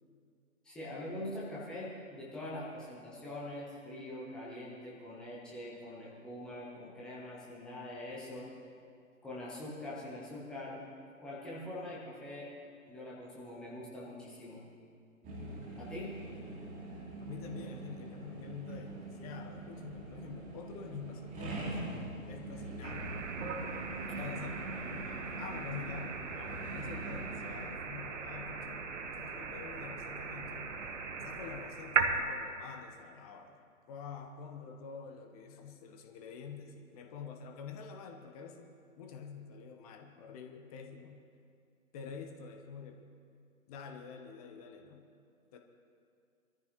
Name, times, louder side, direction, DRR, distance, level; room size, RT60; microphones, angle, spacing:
voice 1, 0.6-8.5 9.2-10.9 11.2-12.5 12.9-14.6 15.8-16.2 24.1-24.2, left 1 dB, ahead, -6 dB, 0.5 m, -43 dB
sound 1, 15.2-27.6, right 2 dB, 20° right, 2.7 m, -43 dB
voice 2, 17.2-21.8 22.3-23.0 24.2-28.9 29.2-30.8 31.2-33.6 33.9-41.2 41.9-43.1 43.7-45.1 45.5-45.6, left 6 dB, 25° left, 4 dB, 1.0 m, -47 dB
sound 2, 22.8-32.2, right 5 dB, 55° right, 1.4 m, -38 dB
23.0 x 14.0 x 3.0 m, 2.4 s
figure-of-eight pair, 130°, 43 cm